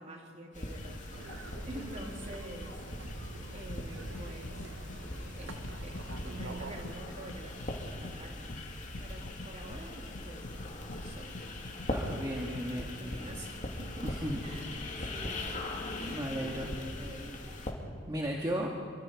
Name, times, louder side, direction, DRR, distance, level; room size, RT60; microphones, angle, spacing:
voice 1, 0.0-2.8 3.5-4.7 5.1-8.6 9.0-10.5 10.8-11.6 12.7-14.1 14.4-15.5 16.0-17.6, right 1 dB, 35° right, 0 dB, 3.3 m, -47 dB
sound 1, 0.5-17.7, left 1 dB, 40° left, 2.5 m, -41 dB
sound 2, 1.1-7.0, right 2 dB, 65° right, 1.2 m, -46 dB
sound 3, 3.2-12.8, left 1 dB, 70° left, 1.2 m, -47 dB
voice 2, 11.9-12.9 14.0-14.4 16.1-16.7 18.1-18.7, equal, 20° right, -2 dB, 1.8 m, -35 dB
25.5 x 24.5 x 4.8 m, 2.1 s
head